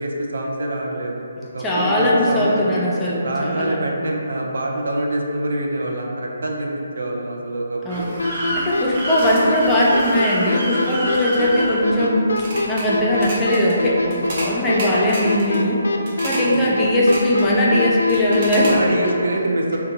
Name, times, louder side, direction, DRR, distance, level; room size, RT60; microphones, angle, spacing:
voice 1, 0.0-2.6 3.0-8.1 16.4-16.7 18.7-19.8, right 1 dB, 70° right, -1 dB, 0.4 m, -26 dB
voice 2, 1.6-3.8 7.8-8.1 8.5-12.3 12.7-15.9 16.2-19.1, left 1 dB, 15° left, -6 dB, 0.5 m, -19 dB
sound 1, 7.9-12.8 13.1-13.7 14.1-14.5 14.8-15.6 16.0-16.5 16.9-17.5 18.1-18.7, right 1 dB, 40° right, 0.7 m, -29 dB
sound 2, 8.2-19.1, left 2 dB, 80° left, 0.3 m, -23 dB
2.7 x 2.2 x 3.9 m, 2.6 s
figure-of-eight pair, 145°, 0 cm